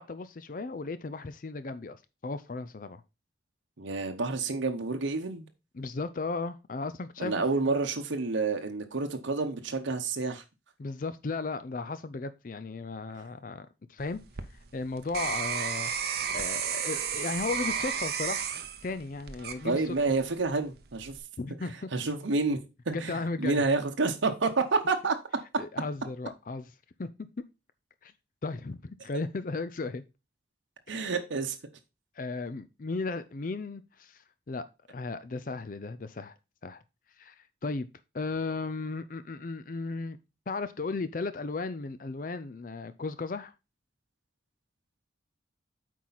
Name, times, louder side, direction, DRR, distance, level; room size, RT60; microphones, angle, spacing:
voice 1, 0.0-3.0 5.7-7.7 10.8-14.2 14.7-15.9 16.3-18.5 18.8-19.9 21.4-21.9 22.9-23.6 25.6-26.7 27.0-27.1 28.0-28.1 28.4-30.0 32.2-36.3 36.6-36.8 37.2-37.9 38.1-40.2 40.5-43.5, left 3 dB, 45° left, 0.4 m, -35 dB
voice 2, 3.8-5.5 7.2-10.4 19.6-21.2 21.9-22.6 22.9-25.1 30.9-31.6, right 3 dB, 85° right, 0.9 m, -29 dB
sound 1, 14.0-20.2 20.7-21.2, right 7 dB, 55° right, 0.7 m, -33 dB
8.4 x 4.6 x 4.0 m
head